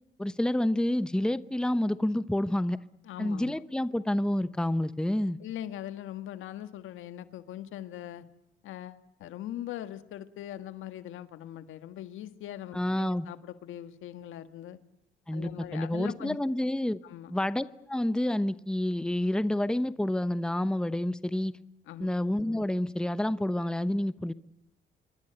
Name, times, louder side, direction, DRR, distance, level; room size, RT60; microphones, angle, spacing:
voice 1, 0.2-2.8 3.2-5.4 12.7-13.3 15.3-17.0 17.3-21.6 22.0-24.3, left 1 dB, 5° left, 14 dB, 0.9 m, -29 dB
voice 2, 3.0-3.6 5.4-8.2 8.6-14.8 15.3-16.4 17.0-17.3 21.9-22.1, left 12 dB, 85° left, 11 dB, 1.7 m, -41 dB
27.0 x 24.0 x 8.1 m, 0.82 s
cardioid pair, 90°, 20 cm